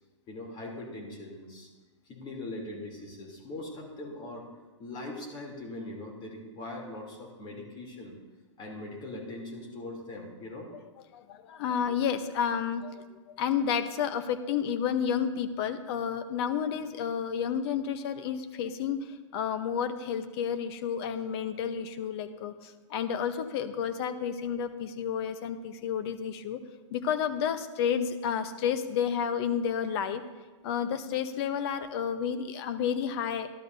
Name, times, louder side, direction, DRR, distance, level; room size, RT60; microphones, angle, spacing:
voice 1, 0.3-1.7 2.1-4.5 4.8-8.1 8.6-10.7 11.6-11.7 16.7-16.8, left 2 dB, 30° left, -1 dB, 3.1 m, -41 dB
voice 2, 11.1-19.1 19.3-26.6 26.9-30.2 30.6-33.5, left 8 dB, 55° left, 9 dB, 0.9 m, -31 dB
14.0 x 12.0 x 2.7 m, 1.2 s
hypercardioid pair, 130°, 16 cm